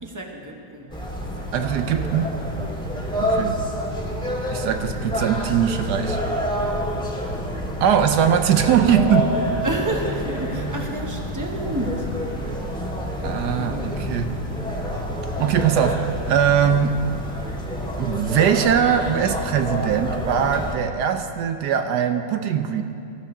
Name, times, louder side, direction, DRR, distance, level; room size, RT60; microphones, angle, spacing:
voice 1, 0.0-0.9 3.3-3.7 9.6-12.1 13.1-13.9, right 1 dB, 15° right, 1 dB, 0.9 m, -30 dB
sound 1, 0.9-20.7, equal, 5° left, 1.7 m, -28 dB
voice 2, 1.5-2.4 3.2-3.6 4.5-6.2 7.8-9.4 13.2-14.3 15.4-17.1 18.0-22.8, right 8 dB, 70° right, 7 dB, 1.1 m, -21 dB
18.0 x 14.5 x 3.8 m, 2.7 s
omnidirectional pair, 2.1 m